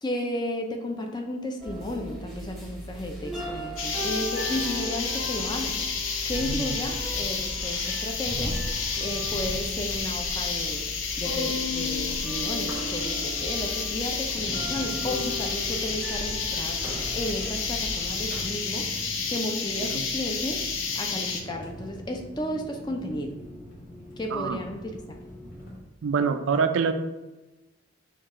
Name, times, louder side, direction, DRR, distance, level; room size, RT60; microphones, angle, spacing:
voice 1, 0.0-5.8 6.3-8.6 9.0-10.8 11.2-16.8 17.1-18.9 19.3-20.6 21.0-23.4 24.2-25.2, left 1 dB, 20° left, 3 dB, 0.4 m, -33 dB
sound 1, 1.6-18.4, left 1 dB, ahead, 0.8 m, -36 dB
sound 2, 3.8-21.4, left 5 dB, 80° left, 0.6 m, -30 dB
voice 2, 6.4-6.7 19.8-20.0 24.3-24.6 26.0-26.9, right 5 dB, 75° right, 8 dB, 0.4 m, -26 dB
sound 3, 14.3-25.8, equal, 40° left, 1.1 m, -42 dB
4.5 x 2.4 x 4.8 m, 1.1 s
head